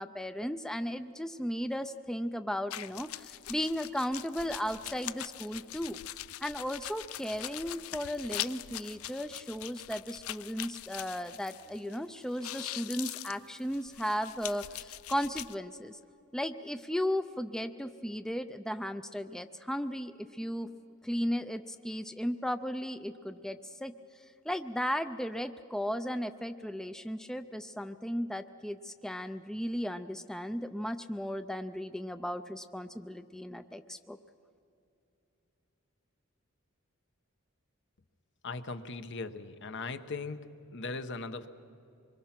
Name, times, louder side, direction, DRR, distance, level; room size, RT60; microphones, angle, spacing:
voice 1, 0.0-6.0 6.4-16.0 16.3-20.7 21.0-23.9 24.4-34.2, equal, 5° left, 10 dB, 0.4 m, -35 dB
sound 1, 2.7-12.0 12.2-15.5, left 14 dB, 80° left, 0.4 m, -42 dB
voice 2, 38.4-41.5, left 3 dB, 60° left, 10 dB, 1.0 m, -39 dB
25.0 x 23.0 x 5.9 m, 2.7 s
head